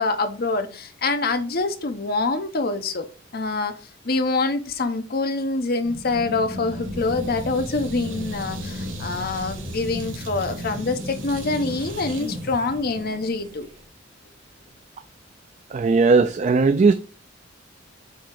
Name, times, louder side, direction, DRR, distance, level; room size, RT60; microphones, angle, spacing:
voice 1, 0.0-3.1 3.3-3.7 4.0-13.7, left 3 dB, 55° left, 0.8 m, -25 dB
sound 1, 5.8-13.8, equal, 90° right, 2.4 m, -34 dB
voice 2, 15.7-16.9, right 4 dB, 40° right, 0.4 m, -17 dB
7.8 x 2.9 x 4.7 m
head